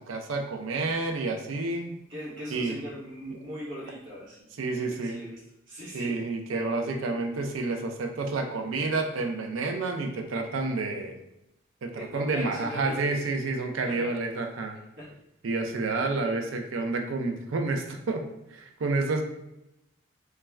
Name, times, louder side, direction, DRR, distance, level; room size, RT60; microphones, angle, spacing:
voice 1, 0.0-1.9 2.5-2.8 4.6-5.2 5.9-11.2 11.8-14.8 15.4-18.2 18.5-19.2, right 3 dB, 80° right, 4 dB, 0.4 m, -29 dB
voice 2, 2.1-4.5 4.8-5.4 5.7-6.2 12.0-13.2 13.8-14.1 15.0-15.1, equal, 65° right, -7 dB, 0.9 m, -39 dB
2.4 x 2.2 x 3.1 m, 0.88 s
head